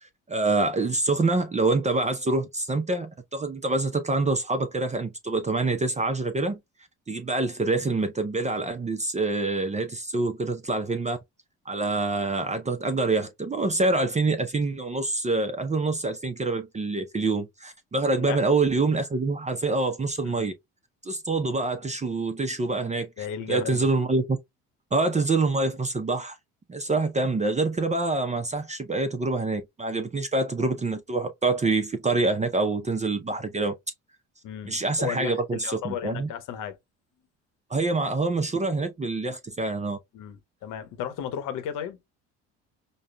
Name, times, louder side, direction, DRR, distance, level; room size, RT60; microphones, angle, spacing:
voice 1, 0.0-6.6 7.1-11.2 11.7-20.5 21.0-24.4 24.9-26.4 26.7-33.8 34.6-36.3 37.7-40.0, right 3 dB, 20° right, 0.6 m, -26 dB
voice 2, 23.2-23.9 34.4-36.8 40.1-42.0, left 9 dB, 60° left, 1.0 m, -34 dB
5.1 x 2.2 x 2.2 m
hypercardioid pair, 65°, 36 cm